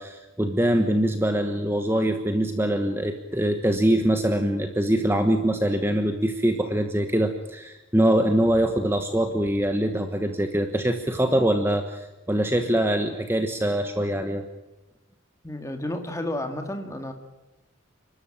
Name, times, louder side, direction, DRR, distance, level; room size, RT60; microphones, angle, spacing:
voice 1, 0.0-14.4, right 1 dB, 10° right, 6 dB, 1.2 m, -23 dB
voice 2, 15.4-17.1, left 1 dB, 15° left, 5 dB, 2.1 m, -31 dB
29.5 x 13.0 x 8.9 m, 1.0 s
head